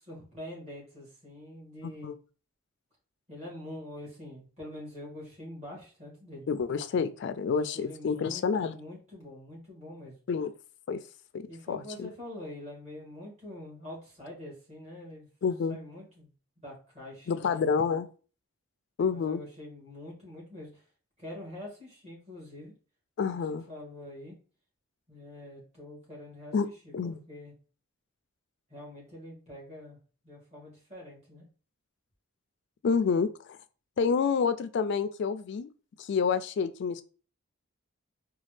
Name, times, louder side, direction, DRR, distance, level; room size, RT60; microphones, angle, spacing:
voice 1, 0.1-2.1 3.3-6.5 7.7-10.1 11.5-15.3 15.7-16.3 16.6-17.8 19.1-20.7 21.2-22.7 23.3-24.4 25.1-27.5 28.7-30.0 30.2-31.5, left 1 dB, 30° right, 1.9 m, -45 dB
voice 2, 1.8-2.2 6.5-8.8 10.3-10.5 10.9-11.0 11.3-12.1 15.4-15.8 17.3-18.1 19.0-19.4 23.2-23.6 26.5-26.7 26.9-27.2 32.8-33.6 34.0-35.7 36.0-37.0, left 5 dB, 55° left, 0.3 m, -28 dB
4.1 x 2.3 x 3.2 m
head